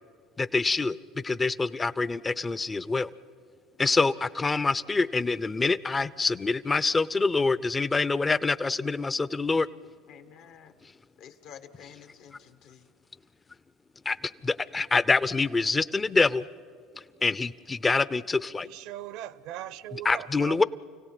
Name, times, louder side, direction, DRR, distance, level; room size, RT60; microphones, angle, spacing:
voice 1, 0.4-3.1 3.8-9.7 14.0-14.2 14.4-16.4 17.2-18.7 20.0-20.6, left 3 dB, 20° left, 18 dB, 0.7 m, -26 dB
voice 2, 10.1-10.7 11.2-12.9, left 8 dB, 65° left, 9 dB, 1.7 m, -50 dB
voice 3, 18.6-20.6, right 13 dB, 70° right, 18 dB, 0.9 m, -39 dB
29.5 x 17.0 x 9.2 m, 2.2 s
supercardioid pair, 85°, 0 cm